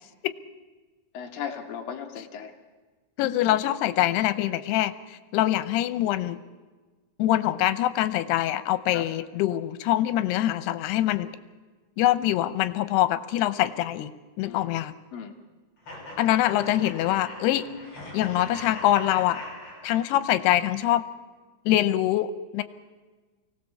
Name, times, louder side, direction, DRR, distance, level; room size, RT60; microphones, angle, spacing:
voice 1, 1.1-2.5 8.9-9.1 14.5-14.8 15.1-15.3, left 7 dB, 65° left, 5 dB, 2.8 m, -36 dB
voice 2, 3.2-6.4 7.2-11.3 12.0-14.1 14.4-14.9 16.2-17.7 18.1-19.4 19.8-21.0 21.7-22.6, left 13 dB, 90° left, 13 dB, 2.9 m, -24 dB
sound 1, 15.8-20.5, left 1 dB, 40° left, 7.0 m, -41 dB
24.0 x 17.5 x 7.0 m, 1.3 s
omnidirectional pair, 4.6 m